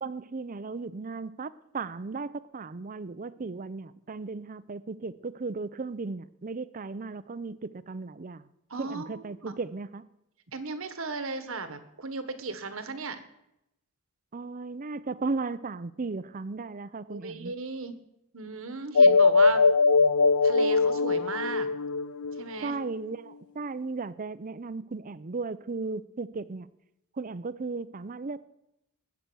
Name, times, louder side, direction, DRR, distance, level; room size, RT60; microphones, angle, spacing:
voice 1, 0.0-8.4 8.8-10.1 14.3-17.5 22.6-26.7 27.2-28.4, right 3 dB, 40° right, 0.5 m, -36 dB
voice 2, 8.7-9.5 10.5-13.2 17.1-18.0 18.3-19.7 20.4-21.7 22.4-22.8, right 3 dB, 65° right, 1.4 m, -35 dB
sound 1, 18.9-22.9, left 4 dB, 90° left, 0.5 m, -21 dB
20.0 x 8.3 x 6.2 m
head